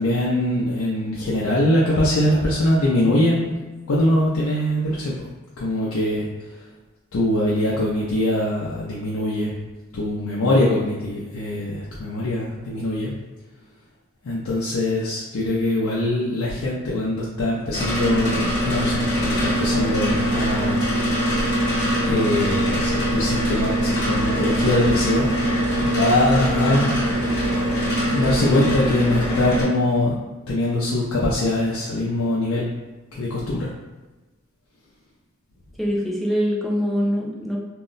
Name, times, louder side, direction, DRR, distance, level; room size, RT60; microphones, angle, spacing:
voice 1, 0.0-3.5 3.9-5.2 5.6-6.6 7.1-9.6 9.9-13.1 14.2-21.0 22.1-25.3 25.8-27.3 28.1-30.1 30.5-32.7 33.1-33.7, left 1 dB, 90° left, -6 dB, 0.5 m, -22 dB
sound 1, 17.7-29.6, equal, 55° left, 0.9 m, -22 dB
voice 2, 35.8-37.6, equal, ahead, -4 dB, 0.4 m, -23 dB
2.2 x 2.0 x 3.8 m, 1.2 s
head